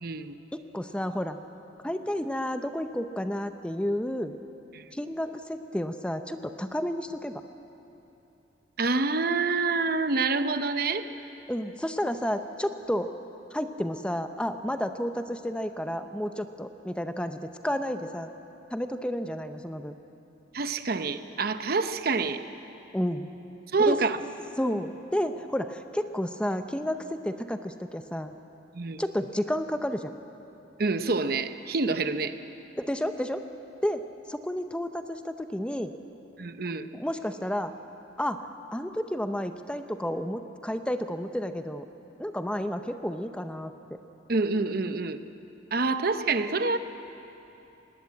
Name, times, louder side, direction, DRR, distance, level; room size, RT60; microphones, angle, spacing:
voice 1, 0.0-0.4 4.7-4.8 8.8-11.1 20.5-22.4 23.7-24.2 28.7-29.0 30.8-32.4 36.4-36.9 44.3-45.2 45.7-46.8, right 3 dB, 55° right, 10 dB, 0.8 m, -27 dB
voice 2, 0.5-1.4 1.8-4.4 4.9-7.4 11.5-13.1 13.5-18.3 18.7-19.9 22.9-23.3 23.8-24.0 24.6-28.3 29.0-30.1 32.8-33.4 33.8-34.0 34.3-35.9 36.9-37.7 38.2-41.9 42.2-43.7, equal, 5° left, 8 dB, 0.7 m, -31 dB
20.5 x 19.0 x 8.3 m, 3.0 s
head